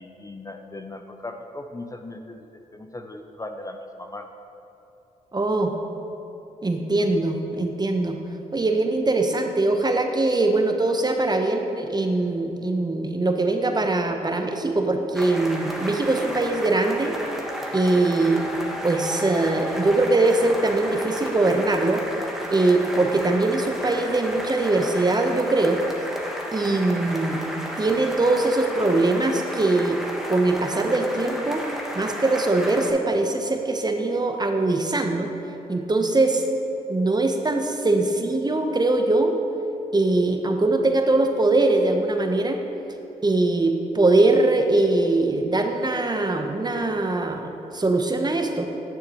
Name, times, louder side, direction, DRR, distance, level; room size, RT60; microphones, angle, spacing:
voice 1, 0.0-2.4 2.7-4.3, left 2 dB, 20° left, 5 dB, 0.5 m, -38 dB
voice 2, 5.3-5.7 6.6-8.2 8.5-17.2 17.7-18.5 18.8-22.0 22.5-25.8 26.5-27.4 27.8-30.0 30.3-31.6 31.9-35.3 35.7-36.4 36.9-39.3 39.9-42.6 43.2-48.7, right 2 dB, 25° right, 4 dB, 0.8 m, -22 dB
sound 1, 15.1-32.9, equal, ahead, 1.2 m, -33 dB
9.5 x 6.6 x 3.0 m, 3.0 s
supercardioid pair, 50°, 17 cm